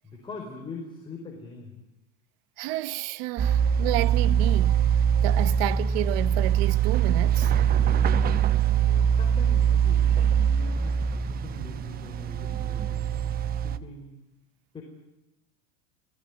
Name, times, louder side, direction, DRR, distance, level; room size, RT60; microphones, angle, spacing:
voice 1, 0.0-1.9 8.6-10.1 10.5-14.1 14.7-14.8, left 4 dB, 15° left, 4.9 m, -43 dB
voice 2, 2.6-4.8 5.2-7.5, right 18 dB, 60° right, 1.1 m, -30 dB
sound 1, 3.4-13.8, right 8 dB, 25° right, 1.0 m, -23 dB
29.5 x 18.5 x 9.7 m
supercardioid pair, 150°, 33 cm